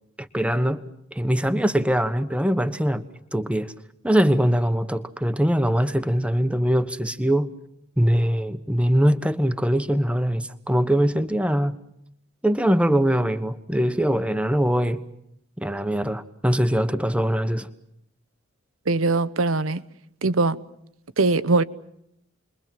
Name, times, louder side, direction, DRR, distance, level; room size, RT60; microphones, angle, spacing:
voice 1, 0.2-0.8 1.1-3.1 3.3-3.7 4.0-7.5 8.0-11.8 12.4-15.0 15.6-17.7, equal, 5° right, 1.2 m, -22 dB
voice 2, 18.9-19.8 20.2-20.6 21.2-21.6, right 3 dB, 85° right, 1.0 m, -21 dB
29.5 x 22.5 x 7.6 m
head